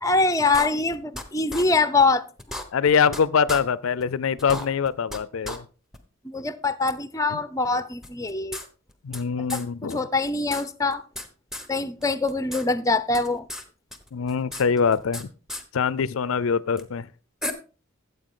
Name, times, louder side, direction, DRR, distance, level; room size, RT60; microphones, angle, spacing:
voice 1, 0.0-2.3 6.2-8.6 9.4-11.0 11.7-13.5, left 3 dB, 15° left, 0.6 m, -24 dB
sound 1, 0.5-1.2 1.5-1.6 2.0-2.1 2.4-3.2 3.5-3.6 4.0-4.1 4.4-5.2 5.4-5.6 5.9-6.0 6.9-7.0 8.0-9.2 9.5-9.6 9.9-10.0 10.3-11.3 11.5-11.7 12.0-12.6 12.9-13.6 13.9-15.2 15.5-15.6 16.8-16.9 17.4-17.5, left 1 dB, ahead, 1.0 m, -34 dB
voice 2, 2.7-5.6 7.3-7.4 9.0-10.0 14.1-15.3 15.7-17.1, left 6 dB, 75° left, 0.4 m, -23 dB
14.0 x 7.9 x 3.7 m
head